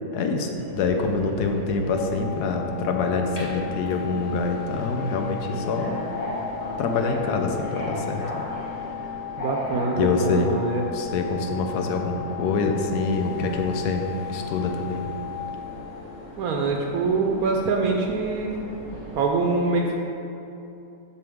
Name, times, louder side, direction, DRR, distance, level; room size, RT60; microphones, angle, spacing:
voice 1, 0.1-6.0 6.8-8.5 10.0-10.5 10.9-15.1, left 4 dB, 85° left, 4 dB, 1.2 m, -25 dB
Subway metro underground, 0.5-19.3, equal, 25° left, 1.1 m, -37 dB
sound 1, 1.9-15.4, left 12 dB, 50° left, 1.8 m, -37 dB
voice 2, 9.4-10.8 16.4-18.5 19.1-19.9, right 3 dB, 75° right, 1 dB, 1.0 m, -24 dB
6.8 x 6.3 x 3.5 m, 2.8 s
omnidirectional pair, 1.7 m